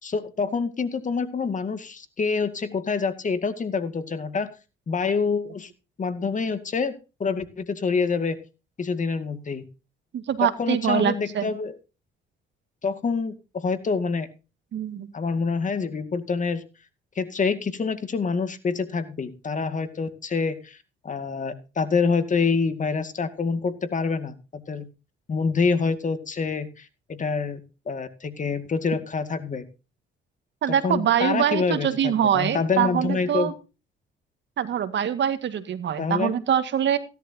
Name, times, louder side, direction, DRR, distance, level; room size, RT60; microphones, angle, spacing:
voice 1, 0.0-4.5 4.9-5.7 6.0-6.9 7.2-8.4 8.8-9.6 10.4-11.7 12.8-14.3 15.1-16.6 17.2-20.8 21.0-24.9 25.3-27.6 27.9-29.6 30.8-33.5 36.0-36.3, left 5 dB, 40° left, 9 dB, 2.2 m, -26 dB
voice 2, 10.1-11.5 14.7-15.1 30.6-33.5 34.6-37.0, right 9 dB, 65° right, 10 dB, 1.9 m, -24 dB
16.5 x 11.5 x 2.9 m, 0.31 s
cardioid pair, 90°, 20 cm